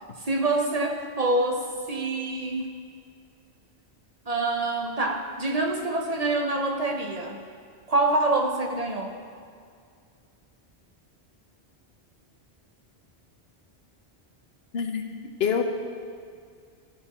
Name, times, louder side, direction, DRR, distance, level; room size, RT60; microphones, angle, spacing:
voice 1, 0.2-2.8 4.3-7.4 7.9-9.1, right 2 dB, 40° right, 1 dB, 1.0 m, -26 dB
voice 2, 14.7-15.0 15.4-15.6, left 7 dB, 70° left, 4 dB, 1.1 m, -25 dB
16.5 x 6.9 x 4.3 m, 2.2 s
omnidirectional pair, 1.1 m